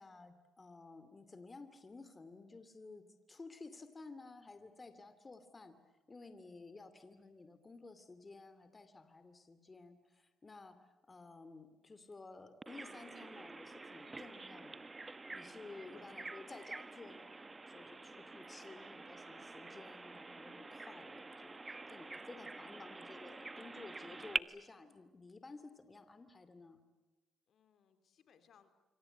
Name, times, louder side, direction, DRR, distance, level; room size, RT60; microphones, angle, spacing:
voice 1, 0.0-5.8 6.1-14.9 15.3-26.8, left 3 dB, 25° left, 10 dB, 2.7 m, -54 dB
Bird vocalization bird call bird song, 12.6-24.4, right 3 dB, 25° right, 1.0 m, -47 dB
voice 2, 15.6-16.3 27.5-28.7, left 7 dB, 65° left, 9 dB, 3.2 m, -68 dB
26.0 x 25.5 x 8.2 m, 1.1 s
cardioid pair, 90°, 0 cm